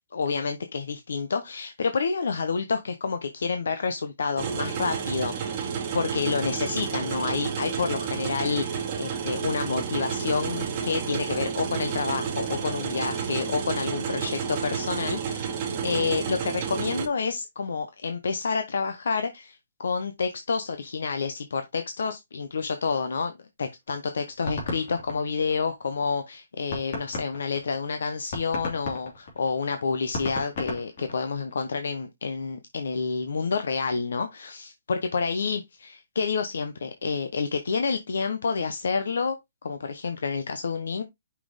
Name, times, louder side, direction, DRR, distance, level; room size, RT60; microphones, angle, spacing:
voice 1, 0.1-23.3 23.6-39.4 39.6-41.0, left 5 dB, 75° left, 0.9 m, -29 dB
sound 1, 4.4-17.1, right 7 dB, 25° right, 1.3 m, -30 dB
sound 2, 23.9-25.9 26.3-26.4 26.7-31.6, left 2 dB, 40° left, 2.7 m, -35 dB
5.7 x 4.2 x 4.9 m
hypercardioid pair, 175°, 0 cm